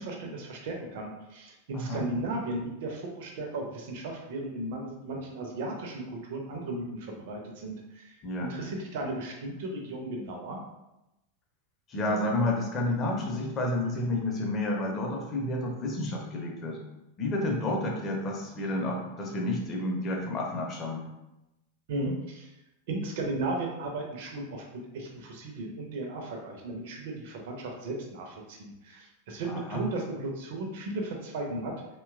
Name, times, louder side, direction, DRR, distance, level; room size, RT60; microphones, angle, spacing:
voice 1, 0.0-10.6 21.9-22.5 22.9-24.6 24.9-31.7, right 2 dB, 50° right, 1 dB, 0.5 m, -35 dB
voice 2, 1.7-2.1 8.2-8.5 11.9-16.8 17.2-21.1 29.4-29.8, left 1 dB, 30° left, 0 dB, 0.6 m, -30 dB
2.8 x 2.2 x 2.3 m, 0.94 s
figure-of-eight pair, 90°, 0 cm